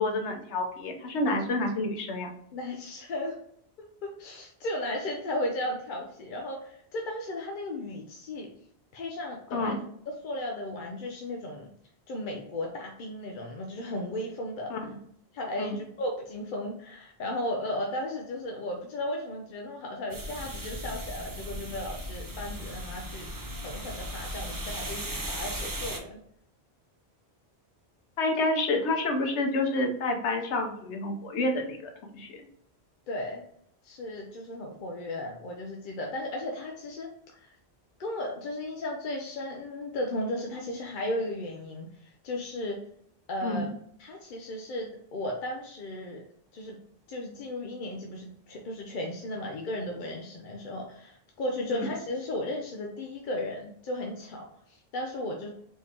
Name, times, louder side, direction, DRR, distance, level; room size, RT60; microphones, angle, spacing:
voice 1, 0.0-2.3 9.5-9.8 14.7-14.8 15.6-15.8 28.2-32.4 43.4-43.7 51.7-51.9, left 2 dB, 90° left, 4 dB, 1.1 m, -29 dB
voice 2, 2.5-3.4 3.8-8.5 8.9-9.7 10.2-11.7 12.1-14.9 15.3-23.3 23.6-26.2 33.1-33.4 33.8-37.6 38.0-42.8 43.3-43.7 44.0-46.2 46.5-46.8 47.1-55.5, left 1 dB, 55° left, 1 dB, 0.7 m, -35 dB
sound 1, 20.1-26.0, equal, 25° right, 0.5 m, -37 dB
4.5 x 3.5 x 2.8 m, 0.68 s
omnidirectional pair, 1.1 m